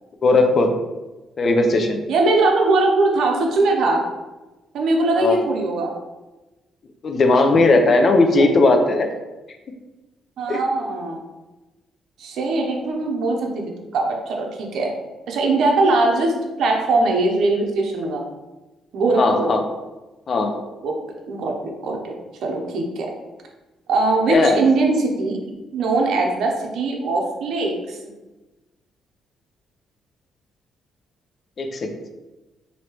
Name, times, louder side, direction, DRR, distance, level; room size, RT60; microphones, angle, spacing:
voice 1, 0.2-0.7 1.4-2.0 5.2-5.4 7.0-9.1 10.5-10.6 19.2-19.6 20.3-20.5 24.3-24.6 31.6-31.9, left 2 dB, 45° left, 4 dB, 0.6 m, -17 dB
voice 2, 2.1-4.0 4.7-5.9 8.4-8.5 10.4-11.2 12.2-14.9 15.3-18.2 18.9-19.5 20.8-20.9 21.3-22.1 22.4-23.1 23.9-25.4 25.7-28.0, right 2 dB, 70° right, 1 dB, 0.7 m, -21 dB
3.1 x 2.8 x 4.5 m, 1.1 s
cardioid pair, 90°, 0 cm